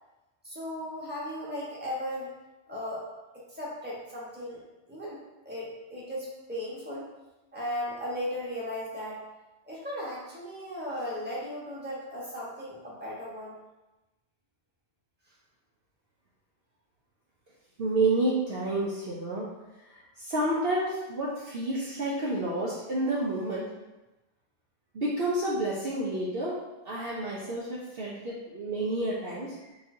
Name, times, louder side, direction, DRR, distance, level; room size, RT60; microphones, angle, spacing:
voice 1, 0.4-2.3 2.7-3.0 3.5-4.6 4.9-7.1 7.5-9.2 9.7-13.5, left 1 dB, 10° right, -7 dB, 1.2 m, -36 dB
voice 2, 17.8-19.5 19.9-23.7 24.9-26.6 26.8-29.6, right 2 dB, 55° right, -6 dB, 0.9 m, -29 dB
6.7 x 2.9 x 2.7 m, 1.0 s
omnidirectional pair, 1.3 m